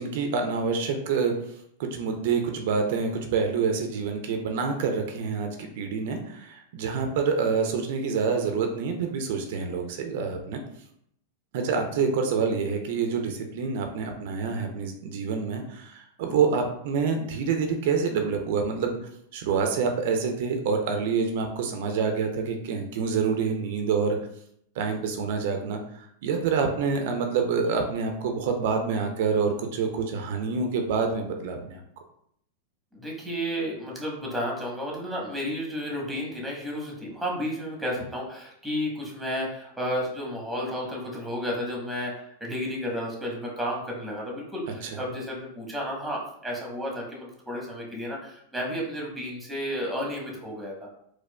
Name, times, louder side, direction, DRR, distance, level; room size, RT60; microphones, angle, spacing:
voice 1, 0.0-1.4 1.8-10.6 11.5-19.0 19.3-24.2 24.8-31.8 44.8-45.0, right 5 dB, 60° right, 5 dB, 0.4 m, -27 dB
voice 2, 32.9-50.9, equal, ahead, -2 dB, 1.0 m, -32 dB
4.2 x 2.2 x 2.2 m, 0.70 s
hypercardioid pair, 100°, 0 cm